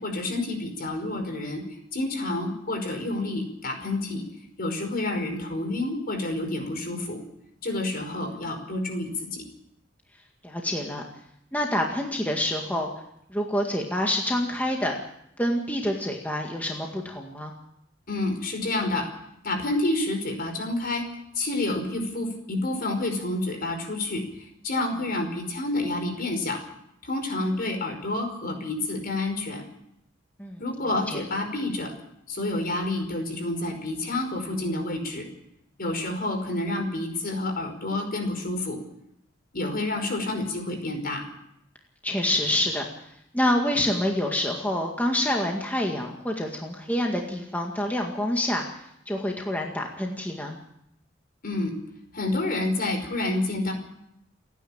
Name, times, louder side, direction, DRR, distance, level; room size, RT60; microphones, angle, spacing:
voice 1, 0.0-4.2 4.6-7.2 7.6-9.4 18.1-19.1 19.4-21.1 21.4-26.6 27.0-29.6 30.6-31.9 32.3-35.3 35.8-38.8 39.5-41.3 51.4-51.7 52.1-53.7, left 2 dB, 50° left, 5 dB, 5.2 m, -29 dB
voice 2, 10.4-11.0 11.5-12.9 13.3-14.9 15.4-17.5 30.4-30.6 31.1-31.2 36.1-36.2 42.0-42.8 43.3-48.6 49.1-50.6, left 1 dB, 10° left, 1 dB, 2.0 m, -27 dB
29.5 x 10.0 x 8.8 m, 0.78 s
head